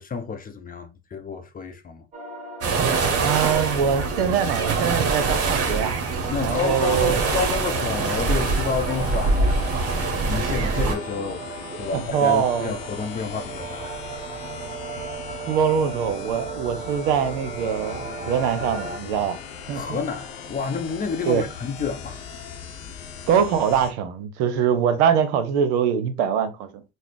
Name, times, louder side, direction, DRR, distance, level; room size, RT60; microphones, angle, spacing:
voice 1, 0.0-2.0 6.3-14.0 19.7-22.2, left 5 dB, 25° left, 0.6 m, -30 dB
sound 1, 2.1-19.0, right 3 dB, 20° right, 1.3 m, -37 dB
sound 2, 2.6-10.9, right 4 dB, 45° right, 0.9 m, -24 dB
voice 2, 3.2-5.9 6.4-7.2 11.9-12.7 15.5-19.4 19.7-20.0 21.3-21.4 23.3-26.8, right 8 dB, 75° right, 0.7 m, -23 dB
sound 3, 6.5-23.9, left 7 dB, 85° left, 0.7 m, -39 dB
3.9 x 2.1 x 3.1 m
hypercardioid pair, 70°, 33 cm